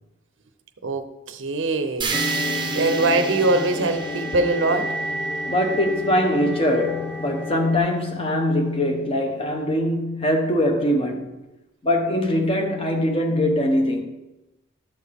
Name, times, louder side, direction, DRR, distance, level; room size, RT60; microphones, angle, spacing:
voice 1, 0.8-2.2 2.7-4.9, right 2 dB, 65° right, 0.7 m, -22 dB
sound 1, 2.0-6.1, right 5 dB, 25° right, 0.7 m, -33 dB
sound 2, 2.1-7.8, equal, 10° left, 0.5 m, -29 dB
voice 2, 5.5-11.4 11.8-14.0, left 1 dB, 25° left, 1.1 m, -22 dB
13.0 x 6.3 x 3.6 m
head